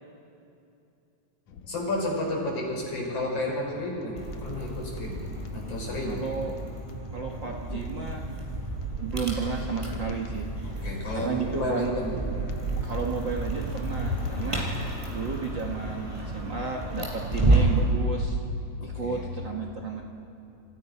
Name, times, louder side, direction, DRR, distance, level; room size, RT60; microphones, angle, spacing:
sound 1, 1.5-17.1, left 5 dB, 70° left, 2.4 m, -42 dB
voice 1, 1.7-5.2 5.5-6.2 10.6-12.2 14.4-14.8 18.8-19.3, left 1 dB, 50° left, -1 dB, 6.8 m, -32 dB
sound 2, 4.2-17.9, right 2 dB, 10° right, 5.3 m, -31 dB
voice 2, 6.1-6.6 7.1-8.3 9.0-10.5 11.1-11.9 12.8-14.6 15.1-18.4 18.8-20.0, right 5 dB, 45° right, 1 dB, 2.1 m, -33 dB
30.0 x 29.0 x 5.7 m, 2.7 s
omnidirectional pair, 3.4 m